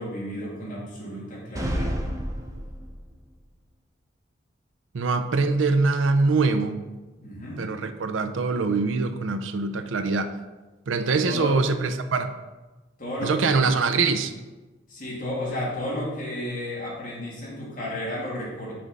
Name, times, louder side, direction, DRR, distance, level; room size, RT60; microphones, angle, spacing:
voice 1, 0.0-2.0 7.2-7.6 11.2-11.6 13.0-13.7 14.9-18.7, left 1 dB, 45° left, -6 dB, 2.4 m, -32 dB
sound 1, 1.6-3.2, equal, 15° right, 0.6 m, -30 dB
voice 2, 4.9-6.8 7.6-10.3 10.9-12.3 13.2-14.3, right 4 dB, 85° right, 9 dB, 0.5 m, -23 dB
6.1 x 4.8 x 5.3 m, 1.2 s
head